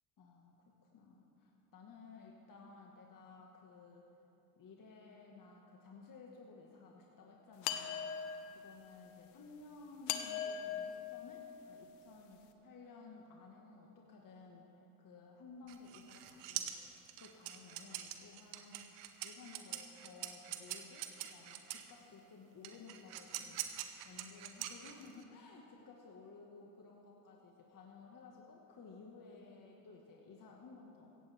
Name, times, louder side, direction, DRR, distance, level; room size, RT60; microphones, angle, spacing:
voice 1, 0.2-0.6 0.8-4.1 4.6-14.7 15.0-23.6 24.0-31.1, left 4 dB, 40° left, -1 dB, 2.0 m, -56 dB
sound 1, 7.6-8.7 10.1-12.0, left 9 dB, 75° left, 1.1 m, -40 dB
sound 2, 15.7-21.9 22.6-25.2, right 12 dB, 70° right, 1.2 m, -44 dB
16.5 x 15.0 x 3.7 m, 2.9 s
hypercardioid pair, 75°, 50 cm